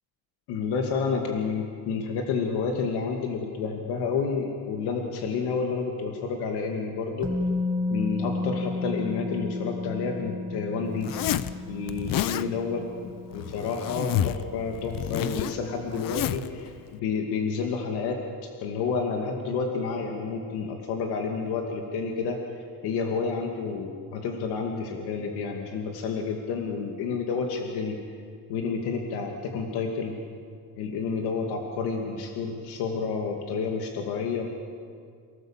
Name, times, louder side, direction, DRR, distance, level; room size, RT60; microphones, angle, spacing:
voice 1, 0.5-7.3 7.9-11.3 11.7-18.2 18.6-22.4 22.8-28.0 28.5-30.2 30.8-34.5, left 5 dB, 90° left, 1 dB, 2.5 m, -30 dB
Musical instrument, 7.2-15.1 15.4-15.6, left 2 dB, 10° right, 2.1 m, -33 dB
Zipper (clothing), 11.0-11.5 11.9-12.5 13.3-14.4 14.7-16.5, left 11 dB, 60° left, 0.9 m, -29 dB
29.0 x 18.0 x 7.5 m, 2.2 s
cardioid pair, 140°, 38 cm